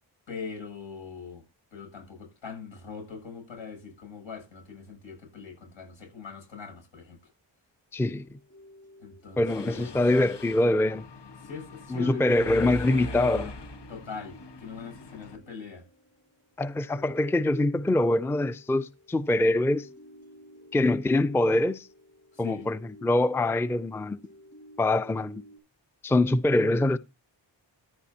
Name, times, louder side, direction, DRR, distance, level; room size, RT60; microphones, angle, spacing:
voice 1, 0.3-1.4 1.7-7.2 9.0-9.9 11.4-13.5 13.9-15.8 22.3-22.7, left 5 dB, 80° left, 7.9 m, -42 dB
voice 2, 7.9-8.4 9.4-11.1 11.9-13.5 16.6-19.9 20.7-21.9 22.4-24.2 24.8-25.4 26.0-27.0, left 2 dB, 5° left, 0.5 m, -24 dB
sound 1, 8.1-11.0 11.4-25.6, equal, 30° left, 4.7 m, -54 dB
Mechanisms, 9.5-15.4, left 2 dB, 60° left, 1.4 m, -42 dB
14.5 x 10.0 x 2.8 m
cardioid pair, 55°, 46 cm